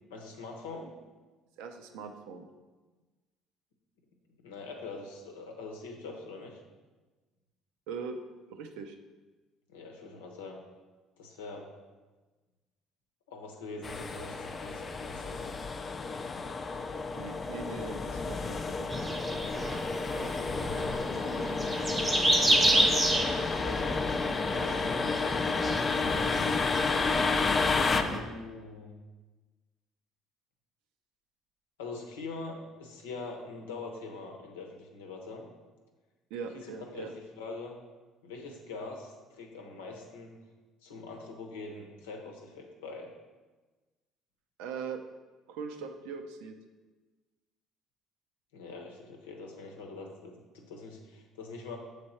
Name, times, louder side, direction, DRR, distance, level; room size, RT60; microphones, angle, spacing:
voice 1, 0.1-0.9 4.4-6.6 9.7-10.6 11.2-11.7 13.3-15.5 20.4-20.8 23.6-24.0 24.4-25.0 28.0-29.0 31.8-35.5 36.5-37.7 38.2-40.3 40.8-43.1 48.5-51.8, left 3 dB, 90° left, 1 dB, 0.8 m, -43 dB
voice 2, 1.6-2.5 7.9-8.2 8.5-9.0 17.2-19.1 36.3-37.1 44.6-45.0 45.5-46.6, right 5 dB, 75° right, 6 dB, 0.5 m, -41 dB
sound 1, 13.8-28.0, left 4 dB, 35° left, 0.4 m, -31 dB
sound 2, 18.9-28.2, right 1 dB, 15° right, 0.8 m, -30 dB
6.8 x 3.3 x 4.2 m, 1.3 s
hypercardioid pair, 65°, 0 cm